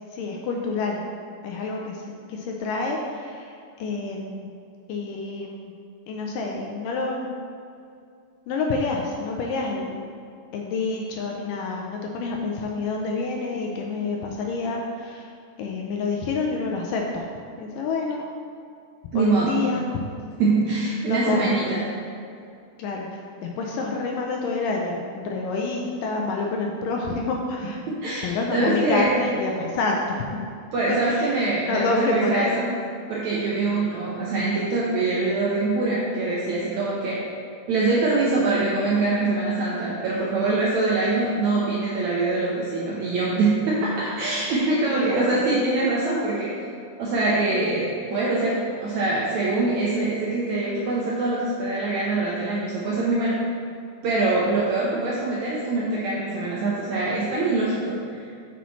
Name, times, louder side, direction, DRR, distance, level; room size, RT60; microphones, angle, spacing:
voice 1, 0.1-1.0 1.4-4.5 4.9-5.7 6.1-7.4 8.5-10.1 10.5-15.3 15.6-17.2 17.6-18.3 19.2-19.9 21.1-21.7 22.8-27.8 28.2-30.4 31.1-31.3 31.7-32.6 44.9-45.4, left 3 dB, 80° left, 0 dB, 2.0 m, -28 dB
voice 2, 19.1-19.7 20.4-21.8 27.9-29.1 30.7-32.7 33.1-37.2 37.7-46.7 47.0-53.4 54.0-58.2, right 2 dB, 75° right, -5 dB, 1.7 m, -24 dB
8.0 x 5.7 x 3.1 m, 2.4 s
omnidirectional pair, 4.2 m